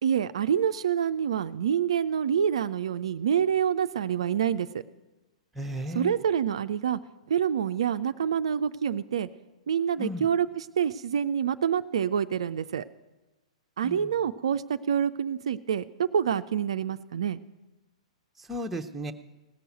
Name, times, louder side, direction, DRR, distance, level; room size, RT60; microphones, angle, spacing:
voice 1, 0.0-4.7 5.9-7.0 7.3-9.3 9.7-12.8 13.8-17.4, right 8 dB, 60° right, 11 dB, 0.4 m, -27 dB
voice 2, 5.5-6.2 10.0-10.3 13.8-14.1 18.4-19.1, equal, 5° right, 4 dB, 0.8 m, -34 dB
17.0 x 6.8 x 9.2 m, 1.1 s
figure-of-eight pair, 105°, 3 cm